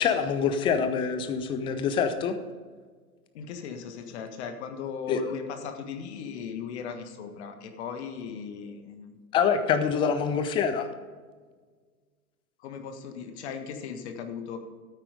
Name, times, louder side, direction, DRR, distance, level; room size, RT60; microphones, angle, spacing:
voice 1, 0.0-2.3 5.1-5.2 9.3-10.9, left 7 dB, 10° left, 10 dB, 0.5 m, -25 dB
voice 2, 3.3-9.1 12.6-14.6, left 6 dB, 45° left, 6 dB, 1.7 m, -37 dB
13.0 x 9.0 x 5.0 m, 1.5 s
figure-of-eight pair, 105°, 46 cm